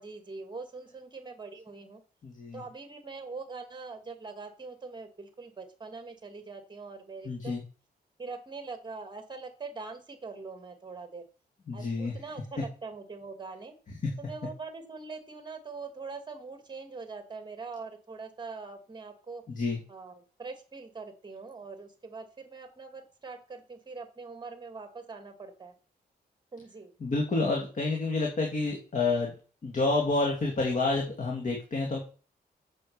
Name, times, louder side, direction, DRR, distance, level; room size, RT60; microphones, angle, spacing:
voice 1, 0.0-2.0 2.5-7.6 8.2-11.2 11.7-13.7 14.2-19.4 19.9-25.7 26.5-26.9, right 4 dB, 25° right, 7 dB, 2.3 m, -43 dB
voice 2, 2.2-2.6 7.2-7.6 11.7-12.1 14.0-14.1 19.5-19.8 27.0-29.3 29.6-32.0, left 3 dB, 50° left, 0 dB, 2.6 m, -29 dB
8.4 x 7.7 x 7.0 m, 0.39 s
wide cardioid pair, 135°, 17 cm